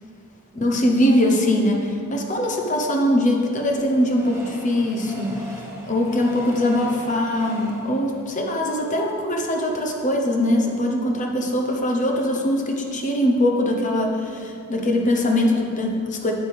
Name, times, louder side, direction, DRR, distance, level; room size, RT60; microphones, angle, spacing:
voice 1, 0.5-5.6 5.9-16.3, left 1 dB, 35° left, 1 dB, 0.9 m, -22 dB
Train, 3.0-9.7 10.2-10.3 10.5-10.6, equal, 15° right, 1.1 m, -40 dB
9.5 x 7.3 x 3.5 m, 2.4 s
head